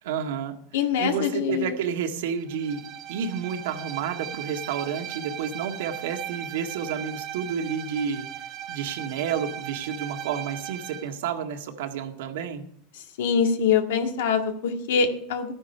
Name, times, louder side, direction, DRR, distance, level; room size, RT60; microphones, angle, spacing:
voice 1, 0.0-0.6 1.0-12.6, right 7 dB, 80° right, 5 dB, 1.7 m, -30 dB
voice 2, 0.7-1.8 13.2-15.5, left 6 dB, 85° left, 5 dB, 1.8 m, -24 dB
Bowed string instrument, 2.5-11.1, right 11 dB, 40° right, 1.1 m, -38 dB
13.5 x 9.8 x 5.6 m, 0.68 s
supercardioid pair, 155°, 0 cm